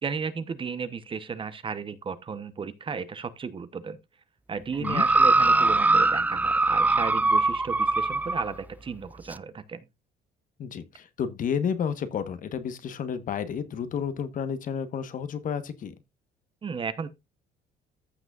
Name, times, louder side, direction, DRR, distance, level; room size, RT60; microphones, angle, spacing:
voice 1, 0.0-4.0 4.5-9.9 16.6-17.1, right 5 dB, 30° right, 0.9 m, -34 dB
sound 1, 4.8-8.5 9.3-9.4, right 2 dB, 10° right, 0.4 m, -22 dB
voice 2, 10.6-15.9, left 7 dB, 50° left, 1.2 m, -31 dB
14.5 x 6.0 x 2.4 m
cardioid pair, 110°, 17 cm